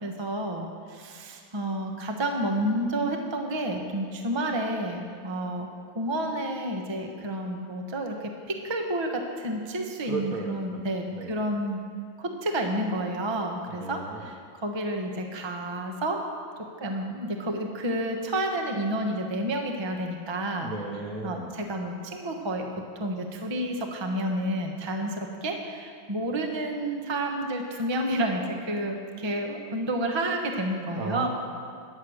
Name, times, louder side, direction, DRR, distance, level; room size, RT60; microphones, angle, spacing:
voice 1, 0.0-5.7 5.9-11.8 12.2-16.2 16.8-20.7 21.2-22.6 22.9-31.3, right 1 dB, 20° right, 2 dB, 0.8 m, -30 dB
voice 2, 10.0-10.9 11.1-11.4 13.7-14.3 20.6-21.5 30.9-31.3, right 3 dB, 55° right, 2 dB, 1.1 m, -35 dB
15.0 x 9.7 x 6.5 m, 2.2 s
omnidirectional pair, 2.3 m